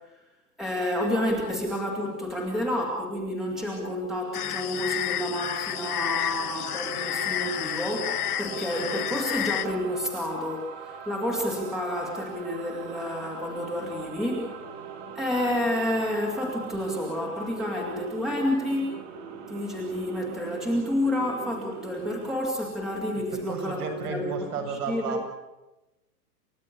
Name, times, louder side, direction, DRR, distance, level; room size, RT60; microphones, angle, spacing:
voice 1, 0.6-14.6 15.2-18.9 19.5-25.2, left 1 dB, ahead, -2 dB, 2.5 m, -29 dB
sound 1, 4.3-9.7, left 12 dB, 70° left, 1.3 m, -31 dB
sound 2, 5.7-22.3, right 6 dB, 20° right, 1.9 m, -42 dB
voice 2, 23.5-25.3, right 5 dB, 70° right, 3 dB, 7.4 m, -32 dB
30.0 x 16.0 x 9.8 m, 1.0 s
supercardioid pair, 180°, 47 cm